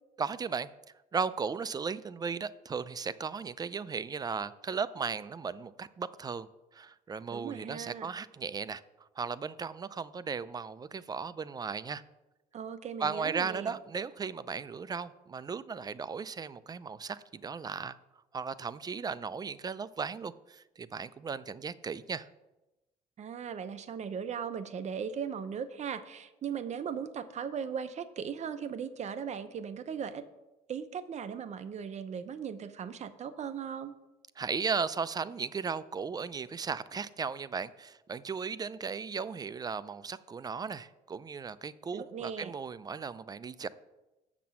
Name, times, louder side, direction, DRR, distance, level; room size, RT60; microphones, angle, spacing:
voice 1, 0.2-0.7 1.1-6.5 6.7-8.8 9.2-12.0 13.0-18.0 18.3-22.3 34.4-43.7, right 5 dB, 25° right, 16 dB, 0.4 m, -36 dB
voice 2, 7.3-8.1 12.5-13.8 23.2-30.2 30.7-33.9 41.9-42.5, right 7 dB, 45° right, 11 dB, 0.7 m, -38 dB
6.8 x 6.0 x 7.5 m, 1.0 s
cardioid pair, 110°, 17 cm